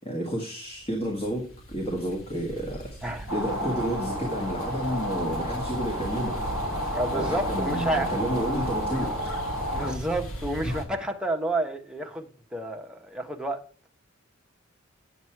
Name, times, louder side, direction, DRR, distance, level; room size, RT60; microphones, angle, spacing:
voice 1, 0.0-3.0 3.3-6.4 7.1-9.2 10.6-10.7, equal, 30° left, 1.8 m, -31 dB
sound 1, 0.7-10.8, right 1 dB, 80° left, 2.3 m, -38 dB
voice 2, 3.0-3.3 6.9-8.1 9.7-13.6, right 1 dB, 5° right, 1.1 m, -30 dB
sound 2, 3.3-9.9, equal, 65° left, 3.7 m, -31 dB
8.9 x 8.1 x 4.6 m
head